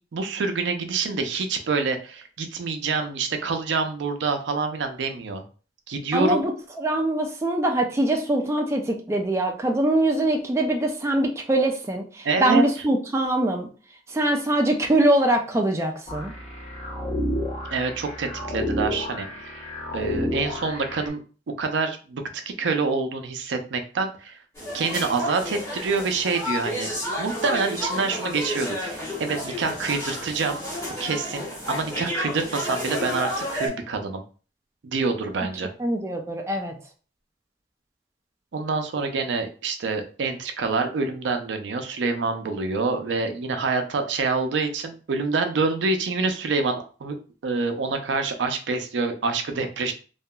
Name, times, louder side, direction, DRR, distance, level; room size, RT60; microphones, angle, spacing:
voice 1, 0.1-5.4 5.9-6.4 12.2-12.6 17.7-21.2 21.6-24.4 24.7-26.9 27.2-30.6 31.0-34.2 34.8-35.7 38.5-47.2 47.4-49.9, right 4 dB, 85° right, 6 dB, 0.4 m, -26 dB
voice 2, 6.1-6.5 6.8-13.7 14.1-16.3 35.8-36.7, right 1 dB, 15° right, 1 dB, 0.3 m, -23 dB
sound 1, 16.1-21.1, left 1 dB, 35° left, 0.8 m, -30 dB
sound 2, 24.5-33.7, left 1 dB, 15° left, 1.3 m, -31 dB
2.8 x 2.3 x 2.2 m, 0.37 s
head